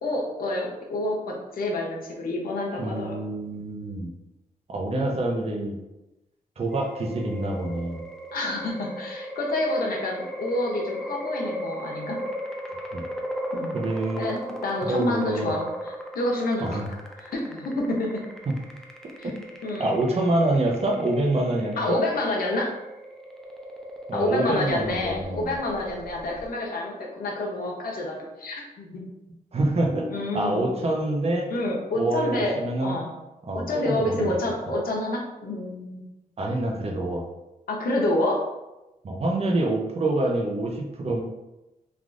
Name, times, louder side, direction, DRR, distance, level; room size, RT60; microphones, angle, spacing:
voice 1, 0.0-3.2 8.3-12.2 13.5-13.8 14.2-16.7 17.2-18.2 19.2-19.3 19.6-20.1 21.8-22.8 24.1-29.0 30.1-30.6 31.5-32.5 32.8-33.1 33.5-36.0 37.7-38.4, left 1 dB, 75° left, -1 dB, 0.8 m, -28 dB
voice 2, 2.8-4.1 4.7-5.8 6.6-8.0 12.9-13.0 13.7-14.3 14.8-15.5 16.6-16.9 19.2-19.3 19.8-22.0 24.1-25.5 29.5-30.1 30.3-31.5 31.9-33.0 33.4-34.3 36.4-37.3 39.0-41.2, right 2 dB, 40° right, 1 dB, 0.6 m, -26 dB
sound 1, 6.7-26.5, equal, 5° left, 0.4 m, -37 dB
3.4 x 2.4 x 2.5 m, 0.99 s
cardioid pair, 90°, 15 cm